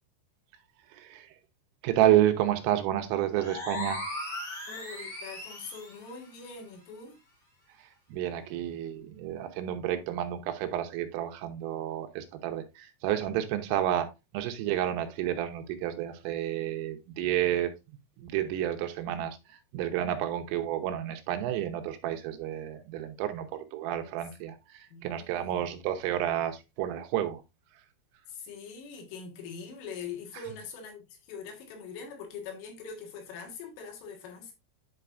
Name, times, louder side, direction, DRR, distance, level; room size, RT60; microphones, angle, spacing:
voice 1, 0.9-1.3 1.8-4.0 8.1-14.1 14.3-17.7 18.2-19.4 19.7-27.4, right 12 dB, 80° right, 3.4 m, -30 dB
sound 1, 3.3-6.0, left 2 dB, 30° left, 2.4 m, -37 dB
voice 2, 4.7-7.2 24.1-24.2 24.9-25.6 28.3-34.5, left 5 dB, 75° left, 4.1 m, -43 dB
11.0 x 4.5 x 2.5 m
omnidirectional pair, 6.0 m